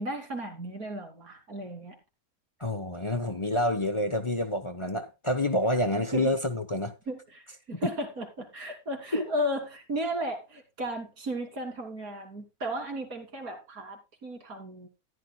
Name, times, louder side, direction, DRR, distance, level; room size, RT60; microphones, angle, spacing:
voice 1, 0.0-1.9 6.1-6.3 7.1-14.9, equal, 85° right, 3.3 m, -35 dB
voice 2, 2.6-6.9 7.7-7.8 9.1-9.2, left 1 dB, 25° left, 0.9 m, -28 dB
14.5 x 11.5 x 2.3 m
omnidirectional pair, 1.5 m